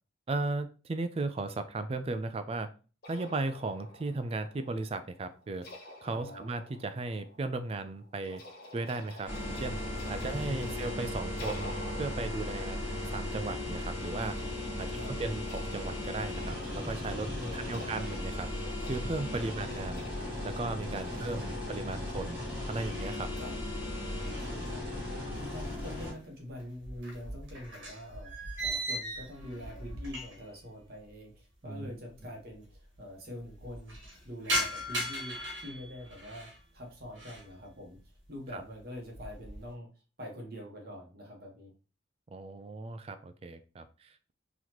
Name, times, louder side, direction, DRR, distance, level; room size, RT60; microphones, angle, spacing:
voice 1, 0.3-2.7 3.1-5.7 6.0-8.4 8.7-9.8 10.1-11.7 12.0-12.8 13.1-14.4 14.8-18.5 18.8-20.0 20.4-22.4 22.7-23.3 31.6-31.9 38.5-38.6 42.3-44.3, right 3 dB, 30° right, 10 dB, 0.3 m, -36 dB
sound 1, 3.0-22.3, left 1 dB, 50° left, 0.8 m, -50 dB
voice 2, 6.1-6.5 10.3-10.7 14.9-15.3 17.4-18.0 21.0-21.6 23.4-23.5 24.2-24.8 25.2-34.0 34.2-38.0 38.3-39.9 40.2-41.7, left 1 dB, 50° right, 0 dB, 1.2 m, -45 dB
sound 2, 9.3-26.1, left 1 dB, 5° right, 1.8 m, -37 dB
sound 3, 25.3-26.2 26.5-30.6 30.9-31.0 31.8-31.9 32.1-32.2 32.5-33.0 33.4-36.6 37.0-37.5 38.0-38.4 38.8-39.7, equal, 70° right, 1.4 m, -38 dB
4.0 x 3.0 x 2.8 m, 0.35 s
head